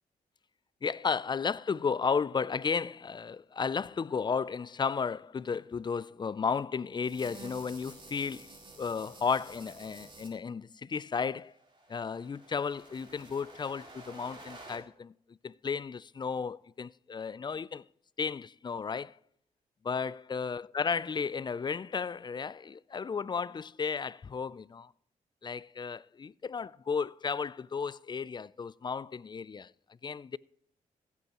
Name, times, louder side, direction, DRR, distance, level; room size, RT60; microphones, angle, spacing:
voice 1, 0.8-11.5 11.9-17.8 18.2-19.2 19.8-24.9 25.4-29.7 30.0-30.4, left 5 dB, 30° left, 0.4 m, -34 dB
sound 1, 7.0-10.3 11.4-14.8, right 2 dB, 35° right, 3.7 m, -51 dB
15.5 x 8.2 x 2.9 m
cardioid pair, 60°, 14 cm